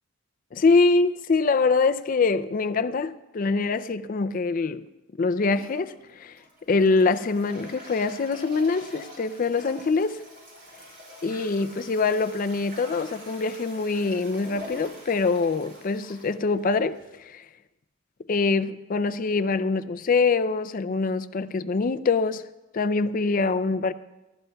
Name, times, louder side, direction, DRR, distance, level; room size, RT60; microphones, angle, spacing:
voice 1, 0.5-4.8 5.2-6.4 6.7-10.2 11.2-17.5 18.3-22.4 22.7-23.9, left 4 dB, 40° left, 0.4 m, -24 dB
Toilet flush, 5.4-17.2, equal, 50° right, 5.4 m, -45 dB
27.0 x 12.5 x 2.3 m
head